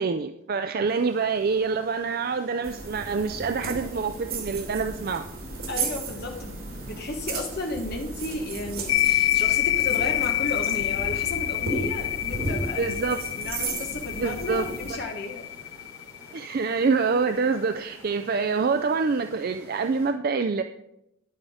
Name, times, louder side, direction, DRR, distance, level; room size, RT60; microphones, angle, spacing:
voice 1, 0.0-5.3 12.8-13.2 14.2-14.7 16.3-20.6, right 4 dB, 40° right, 8 dB, 0.4 m, -26 dB
sound 1, 0.8-20.1, equal, 20° left, 5.1 m, -50 dB
sound 2, 2.6-14.9, right 3 dB, 65° right, 3.0 m, -34 dB
voice 2, 5.7-15.5, left 2 dB, 45° left, 2 dB, 1.1 m, -34 dB
sound 3, 8.9-16.7, left 13 dB, 85° left, 0.5 m, -27 dB
10.0 x 9.0 x 4.9 m, 0.86 s
head